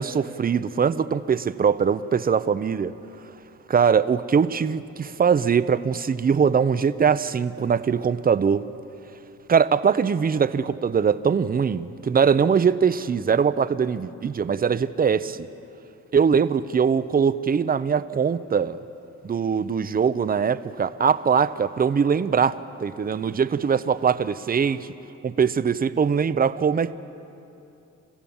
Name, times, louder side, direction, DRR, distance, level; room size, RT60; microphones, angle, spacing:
voice 1, 0.0-2.9 3.7-8.7 9.5-15.5 16.1-18.8 19.2-24.9 25.2-26.9, right 6 dB, 30° right, 14 dB, 0.7 m, -22 dB
30.0 x 15.0 x 7.2 m, 2.8 s
cardioid pair, 90°, 30 cm